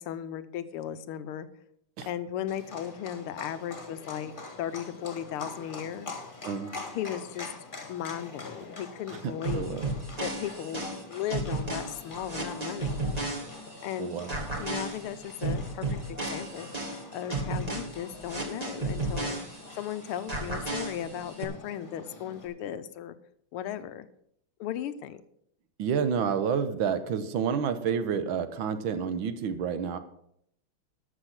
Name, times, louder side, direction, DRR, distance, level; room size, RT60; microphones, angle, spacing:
voice 1, 0.0-1.5 2.1-6.1 6.9-7.5 7.9-9.8 10.2-13.0 13.8-14.2 14.6-16.7 17.1-19.4 19.7-23.2 23.5-24.1 24.6-25.2, left 10 dB, 80° left, 13 dB, 1.6 m, -36 dB
Livestock farm animals working animals, 2.5-22.5, left 3 dB, 25° left, 1.5 m, -45 dB
voice 2, 6.4-6.8 9.2-9.8 14.0-14.3 25.8-30.0, right 7 dB, 70° right, 11 dB, 1.5 m, -29 dB
sound 1, 9.4-13.9 14.3-19.9 20.3-21.4, right 2 dB, 20° right, 1.7 m, -33 dB
12.5 x 6.3 x 5.9 m, 0.73 s
omnidirectional pair, 2.4 m